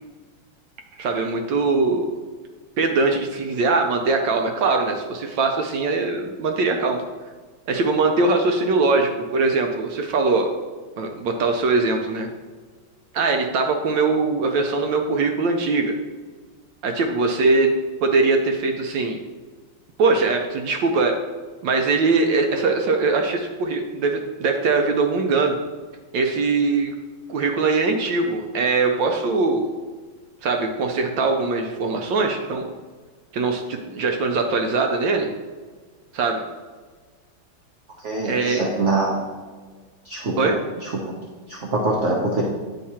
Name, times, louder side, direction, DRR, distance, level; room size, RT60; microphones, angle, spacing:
voice 1, 1.0-2.1 2.8-7.0 7.7-10.5 11.0-12.3 13.1-15.9 16.8-17.7 18.0-19.2 20.0-21.2 21.6-25.6 26.1-26.9 27.3-29.7 30.4-32.6 33.3-35.3 36.1-36.4 38.2-38.6 40.4-40.6, right 3 dB, 70° right, 4 dB, 1.2 m, -21 dB
voice 2, 38.0-39.2 40.0-40.5 40.8-40.9 41.5-42.4, right 2 dB, 50° right, -2 dB, 0.9 m, -24 dB
9.6 x 3.7 x 4.2 m, 1.4 s
omnidirectional pair, 2.3 m